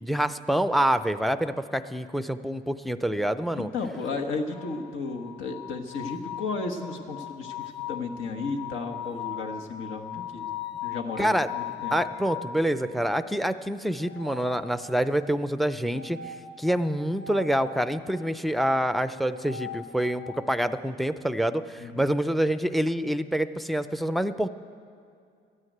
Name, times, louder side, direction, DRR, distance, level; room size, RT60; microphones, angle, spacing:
voice 1, 0.0-3.7 11.2-11.5 11.9-24.5, right 1 dB, ahead, 12 dB, 0.5 m, -26 dB
voice 2, 3.5-10.5 10.8-11.9 21.8-22.1, left 4 dB, 80° left, 3 dB, 1.3 m, -34 dB
sound 1, 4.5-12.6 13.9-15.2 15.9-17.9 19.1-20.5, left 9 dB, 65° left, 1.7 m, -39 dB
12.5 x 9.6 x 9.2 m, 2.3 s
cardioid pair, 90°, 20 cm